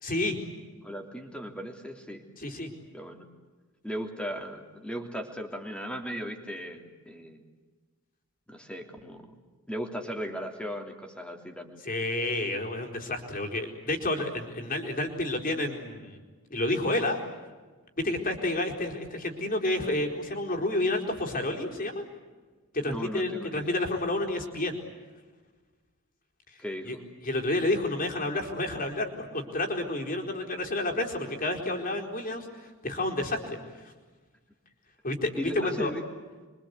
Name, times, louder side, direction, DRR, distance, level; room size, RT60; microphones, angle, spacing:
voice 1, 0.0-0.4 2.4-2.7 11.8-16.2 16.5-17.2 18.0-22.0 22.7-24.8 26.9-27.0 27.2-33.6 35.0-35.9, left 1 dB, 40° left, 2 dB, 4.4 m, -30 dB
voice 2, 0.8-2.2 2.9-3.3 3.8-7.4 8.5-9.4 9.7-11.8 22.8-23.7 26.6-27.0 35.4-36.0, equal, 5° left, 3 dB, 3.1 m, -37 dB
28.5 x 24.5 x 8.4 m, 1.4 s
head